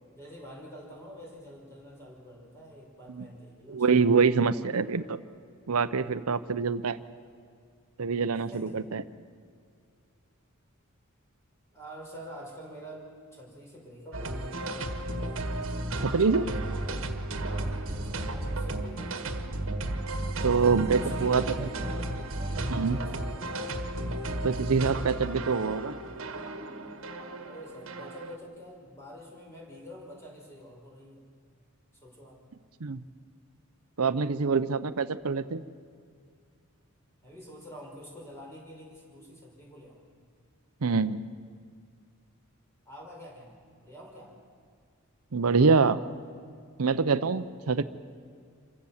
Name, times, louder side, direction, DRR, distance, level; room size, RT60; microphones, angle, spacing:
voice 1, 0.1-4.0 8.5-8.8 11.7-14.5 16.7-19.4 21.0-23.7 27.4-31.3 32.0-32.4 37.2-40.0 42.9-44.3, equal, 10° left, -2 dB, 5.6 m, -47 dB
voice 2, 3.7-5.2 5.7-7.0 8.0-9.0 16.0-16.5 20.4-21.4 22.7-23.0 24.4-26.0 32.8-33.0 34.0-35.6 40.8-41.2 45.3-46.0 46.8-47.8, right 5 dB, 80° right, 12 dB, 0.7 m, -25 dB
sound 1, 14.1-28.4, right 1 dB, 60° right, 1.6 m, -33 dB
27.5 x 16.0 x 7.3 m, 2.2 s
head